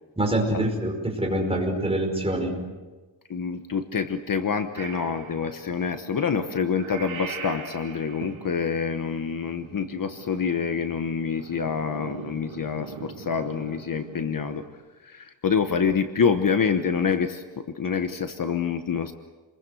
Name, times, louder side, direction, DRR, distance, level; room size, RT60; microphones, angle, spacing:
voice 1, 0.2-2.6, right 1 dB, 15° right, 1 dB, 5.0 m, -25 dB
voice 2, 3.3-14.6 15.0-19.1, left 6 dB, 45° left, 8 dB, 1.1 m, -26 dB
Purr / Meow, 4.7-14.7, right 5 dB, 90° right, 3.9 m, -41 dB
27.5 x 21.5 x 7.8 m, 1.3 s
wide cardioid pair, 155°, 45 cm